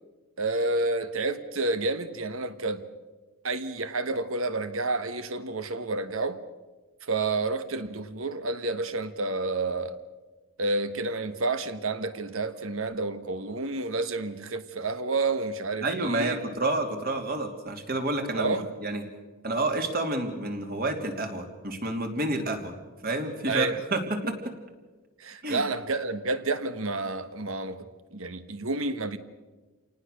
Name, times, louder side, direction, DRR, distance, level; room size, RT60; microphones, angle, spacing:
voice 1, 0.4-2.9 3.4-6.4 7.1-10.0 10.6-16.4 18.3-18.7 23.5-23.8 25.2-29.2, right 3 dB, 70° right, 1.4 m, -30 dB
voice 2, 15.8-18.5 18.8-19.0 19.4-22.7 23.0-24.5 25.4-25.6, right 2 dB, 45° right, 2.9 m, -29 dB
28.0 x 19.0 x 6.6 m
head